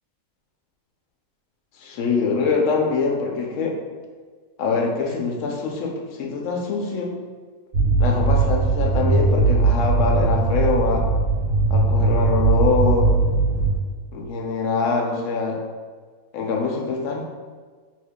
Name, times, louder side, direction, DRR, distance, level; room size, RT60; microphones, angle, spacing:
voice 1, 1.8-3.7 4.6-5.9 6.2-7.1 8.0-11.1 11.7-13.1 14.1-15.6 16.3-17.2, left 4 dB, 70° left, 0 dB, 0.9 m, -24 dB
sound 1, 7.7-13.8, right 3 dB, 85° right, 1.1 m, -19 dB
2.8 x 2.7 x 3.5 m, 1.5 s
omnidirectional pair, 1.5 m